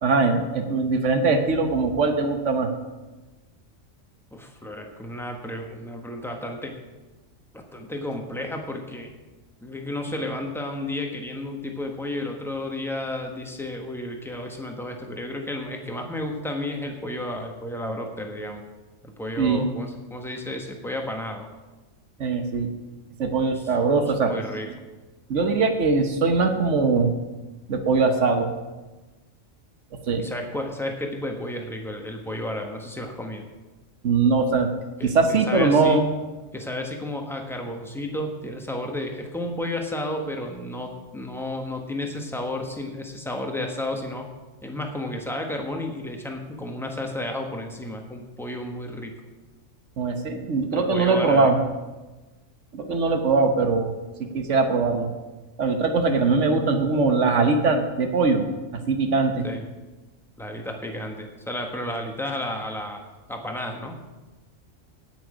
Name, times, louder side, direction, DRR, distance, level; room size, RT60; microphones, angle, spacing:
voice 1, 0.0-2.7 19.4-19.7 22.2-22.7 23.2-24.3 25.3-27.1 27.7-28.5 30.1-30.2 34.0-34.7 35.0-36.0 50.0-51.6 52.7-53.9 54.2-55.1 55.6-58.5 58.9-59.4, right 4 dB, 70° right, 6 dB, 1.4 m, -21 dB
voice 2, 4.3-6.7 7.5-9.1 9.6-18.6 19.0-21.4 23.5-23.8 24.1-24.7 30.1-33.5 35.0-36.0 36.5-44.2 44.6-49.1 50.7-51.5 59.4-59.6 60.4-63.0 63.3-64.0, left 1 dB, ahead, 2 dB, 1.3 m, -32 dB
17.5 x 6.3 x 5.0 m, 1.2 s
omnidirectional pair, 1.3 m